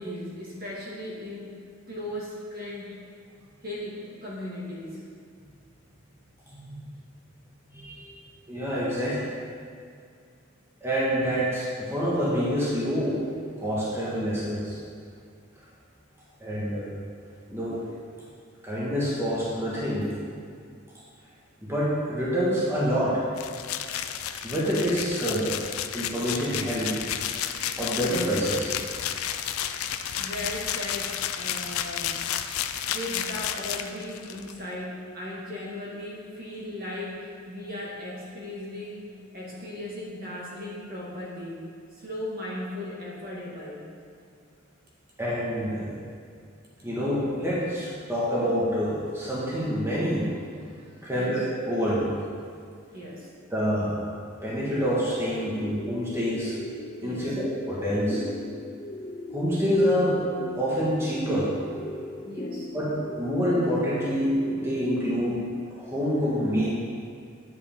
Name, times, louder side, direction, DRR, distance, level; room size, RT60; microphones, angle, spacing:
voice 1, 0.0-1.5 1.9-2.9 3.6-5.0 30.2-32.2 32.9-39.0 39.3-43.9 51.1-51.4 52.9-53.3 57.0-57.3 62.2-62.7, left 1 dB, 45° right, -5 dB, 1.9 m, -37 dB
voice 2, 6.5-6.8 7.7-8.0 8.5-9.3 10.8-13.2 13.6-14.8 16.4-16.9 17.5-17.8 18.6-20.1 21.6-23.2 24.4-25.5 25.9-26.9 27.8-28.7 45.2-45.9 46.8-50.3 51.0-52.1 53.5-54.0 54.4-56.5 57.0-58.2 59.3-60.2 60.5-61.5 62.7-65.4 65.7-66.7, equal, 10° right, -8 dB, 1.7 m, -27 dB
sound 1, 23.3-34.5, left 10 dB, 90° left, 0.5 m, -32 dB
sound 2, 55.6-65.2, left 1 dB, 30° left, 0.5 m, -39 dB
9.7 x 7.8 x 3.8 m, 2.2 s
head